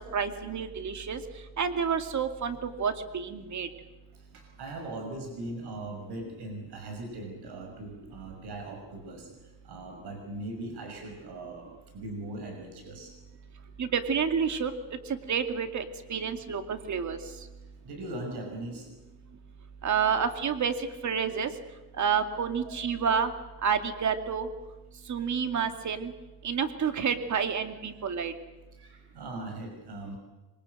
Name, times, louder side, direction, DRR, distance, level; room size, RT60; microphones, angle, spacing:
voice 1, 0.1-1.2 1.6-3.7 13.8-14.7 15.3-17.2 19.8-20.7 21.0-21.5 22.0-23.3 23.6-24.5 25.1-26.1 26.4-28.3, right 6 dB, 45° right, 7 dB, 2.5 m, -29 dB
voice 2, 4.1-11.7 11.9-13.7 17.6-18.9 19.8-20.1 22.6-22.8 25.5-25.6 28.0-28.1 28.7-30.2, right 2 dB, 75° right, 3 dB, 6.1 m, -40 dB
26.0 x 23.5 x 7.9 m, 1.1 s
cardioid pair, 125°, 40 cm